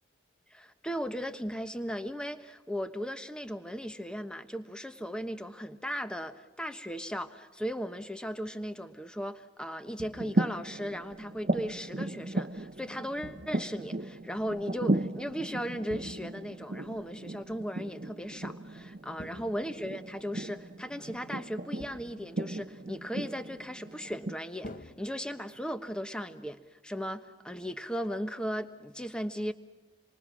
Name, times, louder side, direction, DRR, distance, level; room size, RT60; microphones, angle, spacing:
voice 1, 0.5-29.5, equal, 5° left, 9 dB, 1.1 m, -37 dB
sound 1, 10.0-10.6 13.2-13.9 15.9-16.6 19.2-20.1 21.8-22.4 24.6-25.7, left 1 dB, 45° left, 1.3 m, -48 dB
sound 2, 10.1-24.3, right 2 dB, 45° right, 0.8 m, -36 dB
27.5 x 23.5 x 6.2 m, 1.2 s
head